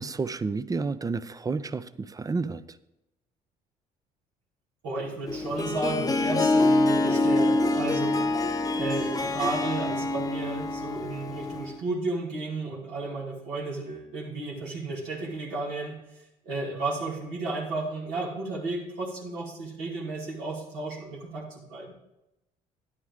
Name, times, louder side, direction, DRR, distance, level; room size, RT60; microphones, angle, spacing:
voice 1, 0.0-2.8, right 4 dB, 20° right, 16 dB, 0.5 m, -31 dB
voice 2, 4.8-8.3 8.7-16.0 16.5-21.9, right 2 dB, 80° right, -4 dB, 2.2 m, -33 dB
Harp, 5.3-11.8, left 2 dB, 20° left, 0.7 m, -26 dB
9.9 x 9.5 x 3.6 m, 0.90 s
hypercardioid pair, 60°, 18 cm